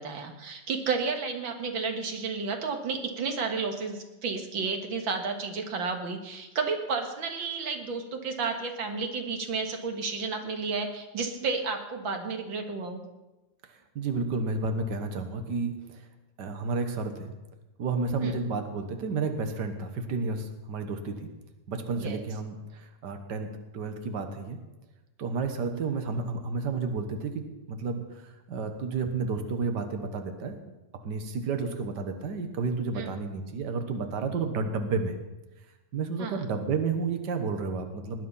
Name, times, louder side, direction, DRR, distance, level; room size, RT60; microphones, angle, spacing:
voice 1, 0.0-13.0 18.2-18.3 21.9-22.2 33.0-33.1 36.2-36.4, right 4 dB, 85° right, 4 dB, 2.4 m, -32 dB
voice 2, 13.7-16.1 16.4-17.3 17.8-21.3 21.7-24.6 25.2-30.6 31.0-35.2 35.9-38.3, right 4 dB, 65° right, 6 dB, 1.9 m, -31 dB
20.0 x 9.4 x 5.6 m, 1.1 s
omnidirectional pair, 2.1 m